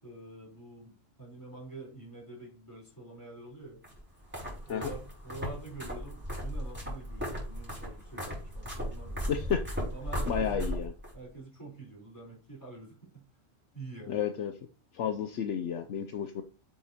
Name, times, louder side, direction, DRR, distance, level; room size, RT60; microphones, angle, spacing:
voice 1, 0.0-3.8 4.6-9.3 9.9-10.7 11.1-13.2 13.7-14.2, right 3 dB, 15° left, -4 dB, 3.8 m, -46 dB
sound 1, 3.8-11.1, equal, 10° right, 4.5 m, -37 dB
voice 2, 9.3-9.6 10.3-10.9 14.1-14.5 14.9-16.4, left 8 dB, 70° left, 7 dB, 0.9 m, -31 dB
7.9 x 6.5 x 2.9 m, 0.35 s
omnidirectional pair, 1.3 m